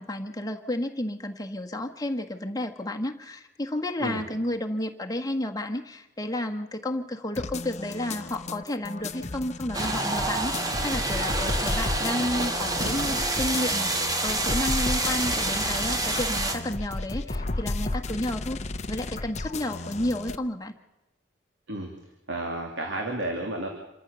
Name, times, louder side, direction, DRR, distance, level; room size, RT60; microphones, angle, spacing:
voice 1, 0.0-13.9 14.2-18.6 18.9-20.7, left 1 dB, 20° left, 4 dB, 1.5 m, -31 dB
sound 1, 7.3-20.4, left 2 dB, 35° left, 0.8 m, -33 dB
sound 2, 9.7-16.6, right 2 dB, 20° right, 1.6 m, -28 dB
voice 2, 22.3-23.7, right 1 dB, 75° right, 2 dB, 2.8 m, -31 dB
27.0 x 14.0 x 6.9 m, 1.0 s
head